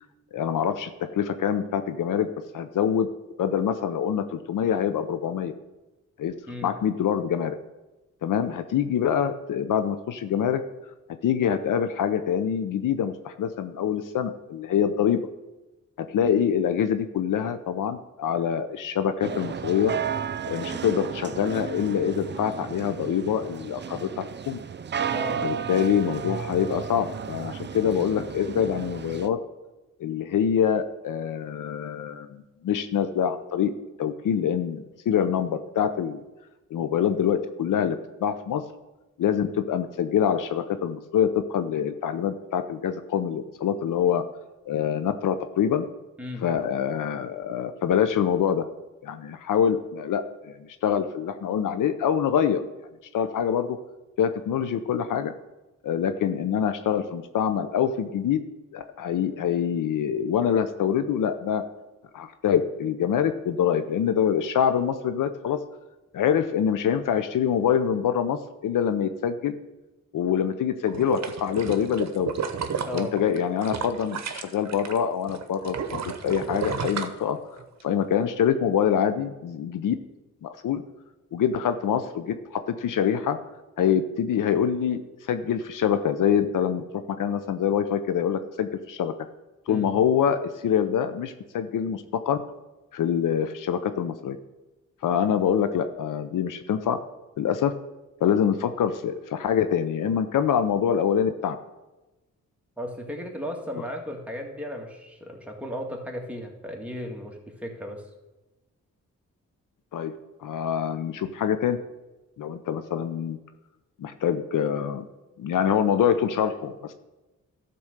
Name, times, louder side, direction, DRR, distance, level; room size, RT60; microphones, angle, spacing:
voice 1, 0.3-2.3 2.5-3.1 3.4-5.5 6.2-6.3 6.6-7.6 8.2-10.6 11.2-15.2 16.0-19.9 20.5-24.6 25.4-29.4 30.0-33.7 34.0-36.2 36.7-38.6 39.2-44.2 44.7-45.8 46.4-48.7 49.0-52.6 53.1-53.8 54.2-55.3 55.8-58.4 58.7-61.6 62.1-65.6 66.1-69.5 70.1-72.3 72.9-77.4 77.8-79.9 80.4-80.8 81.3-83.4 83.8-85.0 85.3-86.8 87.2-89.1 89.7-92.4 92.9-94.4 95.0-97.0 97.4-97.7 98.2-101.6 109.9-110.1 110.4-111.8 112.4-113.4 114.0-115.0 115.4-116.9, left 8 dB, 80° left, 10 dB, 0.7 m, -25 dB
sound 1, 19.2-29.3, right 7 dB, 35° right, 0.5 m, -33 dB
voice 2, 25.1-25.4 46.2-46.5 72.9-73.1 89.7-89.9 102.8-108.0, equal, 5° right, 0 dB, 1.9 m, -35 dB
sound 2, 70.9-75.0 75.3-77.8 78.2-78.3, right 6 dB, 60° right, 0.9 m, -32 dB
12.0 x 4.3 x 6.5 m, 1.1 s
cardioid pair, 60°, 31 cm